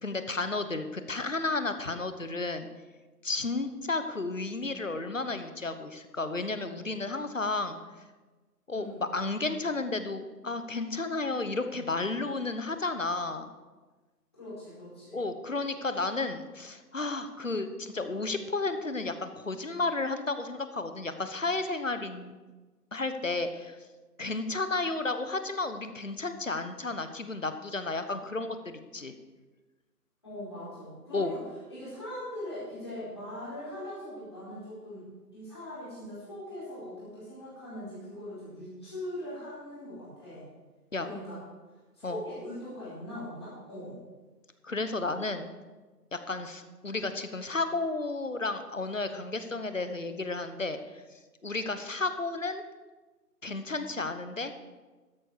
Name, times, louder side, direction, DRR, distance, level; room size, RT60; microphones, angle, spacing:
voice 1, 0.0-2.7 3.2-7.8 8.7-13.5 15.1-22.4 22.9-23.8 24.2-29.1 31.1-31.3 40.9-41.1 42.0-42.2 44.6-45.5 46.1-51.0 51.4-52.6 53.4-54.5, left 3 dB, 50° left, 9 dB, 1.1 m, -32 dB
voice 2, 8.7-9.1 14.3-15.2 30.2-31.4 31.7-35.1 35.3-40.4 41.0-41.4 41.9-44.0, left 1 dB, 15° left, -11 dB, 4.6 m, -41 dB
13.5 x 9.9 x 4.8 m, 1.3 s
figure-of-eight pair, 175°, 48 cm